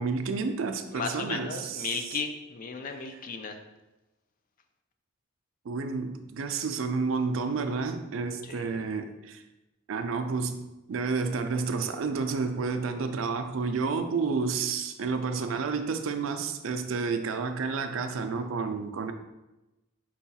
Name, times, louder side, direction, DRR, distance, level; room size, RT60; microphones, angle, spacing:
voice 1, 0.0-2.2 5.7-9.4 9.9-10.6 10.9-19.1, right 4 dB, 65° right, 8 dB, 0.4 m, -30 dB
voice 2, 0.9-3.6 8.4-8.9, left 4 dB, 40° left, 6 dB, 0.4 m, -35 dB
4.6 x 2.3 x 4.0 m, 1.0 s
head